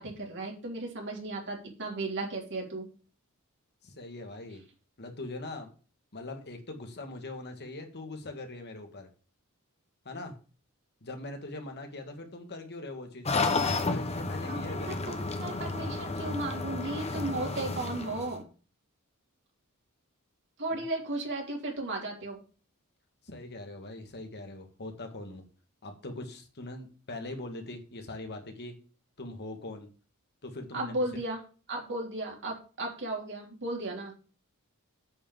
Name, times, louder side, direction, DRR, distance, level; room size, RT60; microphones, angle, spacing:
voice 1, 0.0-2.9 14.5-18.4 20.6-22.4 30.7-31.4 31.7-34.1, right 2 dB, 55° right, 0 dB, 3.4 m, -35 dB
voice 2, 3.8-4.6 5.0-5.7 6.1-9.1 10.1-10.3 11.0-15.2 20.7-20.8 23.2-25.4 25.8-28.8 29.2-29.9 30.4-31.0, left 2 dB, 50° left, 5 dB, 1.7 m, -41 dB
sound 1, 13.2-18.4, left 3 dB, 30° left, 1.1 m, -32 dB
8.7 x 4.8 x 7.3 m, 0.38 s
head